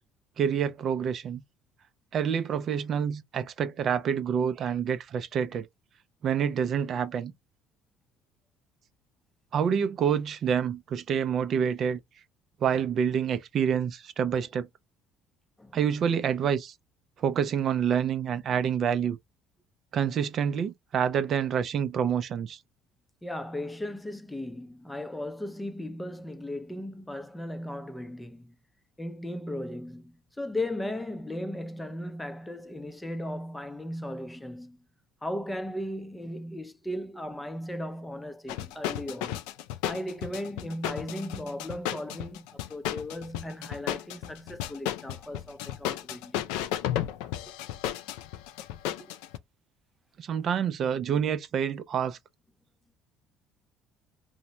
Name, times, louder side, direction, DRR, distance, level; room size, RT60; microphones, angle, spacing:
voice 1, 0.4-1.4 2.1-5.7 6.2-7.3 9.5-12.0 12.6-14.7 15.7-16.7 17.2-19.2 19.9-22.6 50.2-52.2, right 8 dB, 55° right, 0.5 m, -27 dB
voice 2, 23.2-28.5 29.0-34.8 35.2-39.4 39.9-46.6 49.0-49.1, left 1 dB, 10° left, 0.5 m, -36 dB
sound 1, 38.5-49.4, left 12 dB, 85° left, 0.3 m, -34 dB
2.7 x 2.1 x 2.9 m
supercardioid pair, 80°, 0 cm